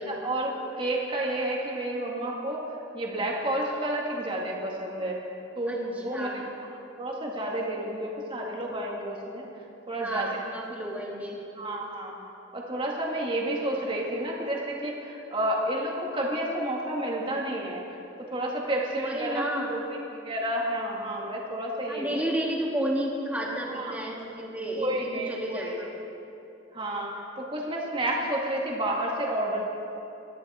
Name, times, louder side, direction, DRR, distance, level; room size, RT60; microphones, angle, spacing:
voice 1, 0.1-2.6 2.9-5.2 5.6-6.5 7.0-9.5 9.9-10.3 11.6-12.1 12.5-18.0 18.3-19.8 20.2-22.3 23.7-24.0 24.8-25.7 26.7-29.6, right 1 dB, 30° right, -2 dB, 2.1 m, -30 dB
voice 2, 6.1-6.4 10.0-11.4 19.0-19.8 21.9-25.9, right 1 dB, 10° right, -3 dB, 2.5 m, -31 dB
22.0 x 14.0 x 4.4 m, 3.0 s
head